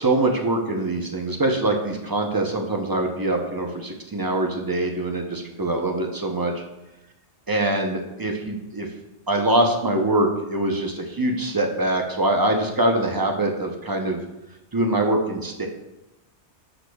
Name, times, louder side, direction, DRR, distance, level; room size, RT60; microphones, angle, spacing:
voice 1, 0.0-6.5 7.5-8.9 9.3-14.2 14.7-15.7, right 1 dB, 25° right, 2 dB, 0.6 m, -23 dB
12.0 x 5.1 x 2.3 m, 0.94 s
omnidirectional pair, 1.2 m